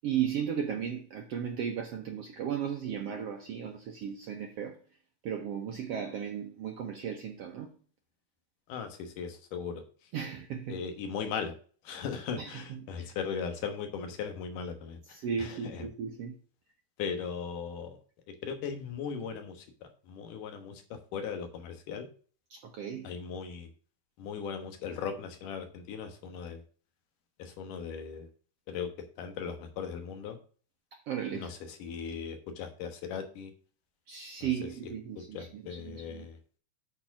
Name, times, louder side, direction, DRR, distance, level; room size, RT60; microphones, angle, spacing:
voice 1, 0.0-4.8 5.2-7.7 10.1-10.8 12.4-13.1 15.1-16.4 22.5-23.1 30.9-31.5 34.1-36.3, right 8 dB, 70° right, 1.5 m, -35 dB
voice 2, 8.7-9.8 10.7-11.5 11.8-15.9 17.0-18.0 18.3-19.7 20.1-22.1 23.0-23.7 24.2-26.6 27.4-28.3 28.7-28.9 29.2-30.4 31.3-33.5 34.4-34.7 35.2-36.4, left 6 dB, 75° left, 2.7 m, -38 dB
8.7 x 4.4 x 5.8 m
omnidirectional pair, 3.9 m